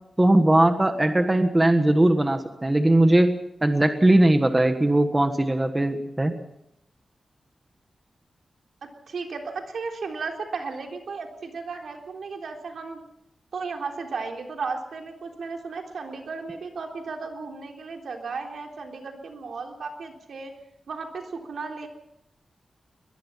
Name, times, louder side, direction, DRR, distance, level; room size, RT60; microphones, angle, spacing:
voice 1, 0.2-3.3 3.6-6.3, right 1 dB, 15° right, 7 dB, 1.5 m, -19 dB
voice 2, 8.8-13.0 13.5-20.5 20.9-21.9, right 4 dB, 85° right, 2 dB, 3.7 m, -35 dB
22.0 x 20.5 x 5.8 m, 0.81 s
wide cardioid pair, 140°, 0 cm